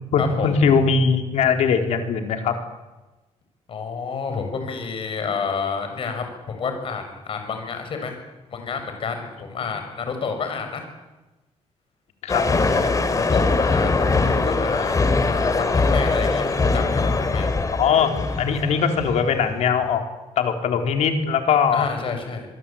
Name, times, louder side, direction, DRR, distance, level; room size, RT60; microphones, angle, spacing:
voice 1, 0.1-2.6 12.2-12.4 17.8-20.0 20.4-21.9, left 6 dB, 80° left, 5 dB, 3.9 m, -20 dB
voice 2, 3.7-8.2 8.5-10.8 12.6-17.5 21.7-22.5, left 5 dB, 50° left, 6 dB, 6.8 m, -29 dB
sound 1, 12.3-19.4, left 3 dB, 30° left, 2.9 m, -22 dB
26.0 x 23.0 x 8.8 m, 1.1 s
cardioid pair, 115°, 11 cm